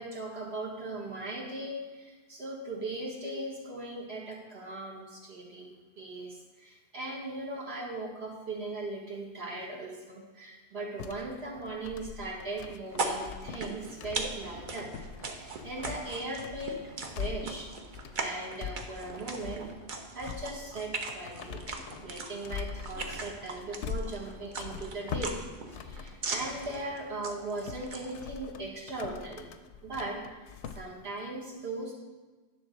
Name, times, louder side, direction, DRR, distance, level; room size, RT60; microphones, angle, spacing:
voice 1, 0.0-14.9 15.2-16.8 17.1-17.7 18.2-19.6 20.1-21.6 22.0-25.4 25.7-29.5 29.8-31.9, right 2 dB, 65° right, -3 dB, 1.6 m, -39 dB
sound 1, 11.0-26.9 27.3-30.8, left 7 dB, 80° left, 0.9 m, -43 dB
sound 2, 12.9-28.2, right 3 dB, 50° right, 0.9 m, -40 dB
9.9 x 3.8 x 6.4 m, 1.3 s
omnidirectional pair, 1.1 m